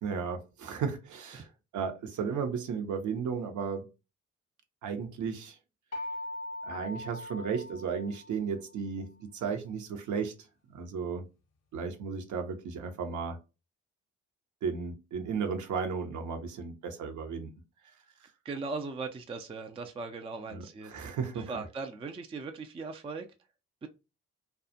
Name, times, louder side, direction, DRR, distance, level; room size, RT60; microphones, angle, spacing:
voice 1, 0.0-3.9 4.8-5.6 6.6-10.4 10.7-11.3 11.7-13.4 14.6-17.5 18.2-18.3 20.5-21.6, right 6 dB, 50° right, 0.7 m, -34 dB
sound 1, 5.9-8.7, left 1 dB, 45° left, 0.7 m, -41 dB
voice 2, 18.4-21.1 21.5-23.3 23.8-23.9, right 4 dB, 15° right, 0.4 m, -39 dB
2.3 x 2.2 x 2.6 m
hypercardioid pair, 45°, 37 cm